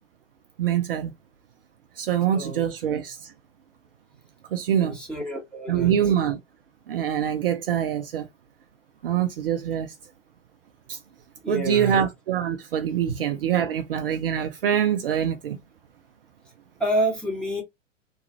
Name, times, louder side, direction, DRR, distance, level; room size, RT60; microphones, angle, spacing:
voice 1, 0.6-1.1 2.0-3.3 4.5-5.0 5.7-6.4 6.9-8.3 9.0-9.9 10.9-11.0 11.5-15.6, right 9 dB, 50° right, 0.5 m, -24 dB
voice 2, 2.3-2.6 4.8-5.9 11.4-12.1 13.1-13.2 16.8-17.6, right 1 dB, ahead, 1.1 m, -28 dB
3.0 x 2.4 x 2.7 m
figure-of-eight pair, 110°, 38 cm